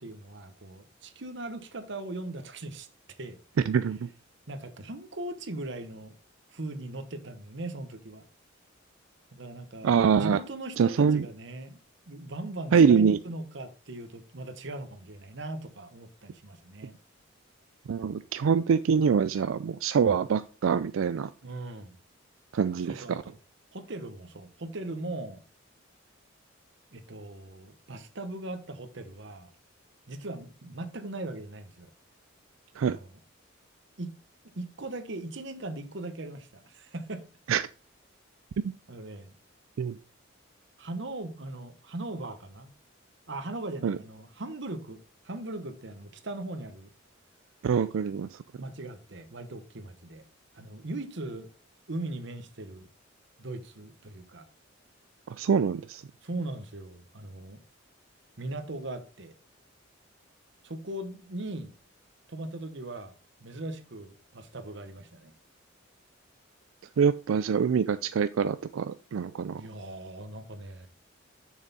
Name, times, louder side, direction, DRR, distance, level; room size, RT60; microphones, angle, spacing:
voice 1, 0.0-2.9 3.2-3.4 4.5-6.1 6.5-8.2 9.3-11.8 12.1-16.9 21.4-22.0 22.7-23.4 23.7-25.4 26.9-29.5 30.1-31.9 32.8-33.1 34.0-34.2 34.5-37.3 38.9-39.4 40.8-42.7 43.3-45.0 45.2-46.9 48.6-50.2 50.5-51.5 51.9-52.9 53.4-54.5 56.2-57.6 58.4-59.3 60.6-61.7 62.3-63.1 63.4-65.3 69.5-70.9, right 2 dB, 60° right, 1.1 m, -39 dB
voice 2, 3.7-4.1 9.8-10.4 10.8-11.3 12.7-13.2 17.9-21.3 22.5-23.2 32.8-33.0 37.5-37.6 39.8-40.0 43.8-44.0 47.6-48.4 55.4-56.0 67.0-69.6, right 6 dB, 90° right, 0.4 m, -24 dB
7.0 x 6.4 x 4.1 m
head